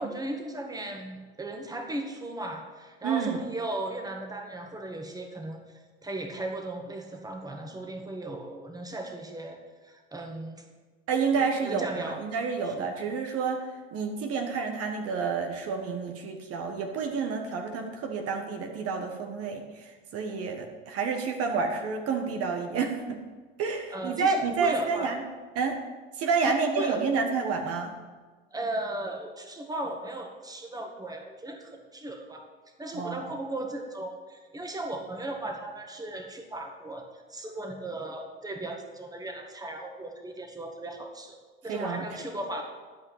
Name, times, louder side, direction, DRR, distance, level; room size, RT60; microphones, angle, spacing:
voice 1, 0.0-10.6 11.3-12.2 12.6-12.9 23.9-25.3 26.4-27.2 28.5-32.5 32.8-42.6, right 1 dB, 10° right, 3 dB, 1.8 m, -37 dB
voice 2, 3.0-3.4 11.1-23.2 23.6-25.2 25.5-25.8 26.2-28.0 32.9-33.2 41.7-42.1, right 5 dB, 50° right, 4 dB, 1.5 m, -29 dB
12.0 x 5.4 x 8.6 m, 1.4 s
hypercardioid pair, 90°, 29 cm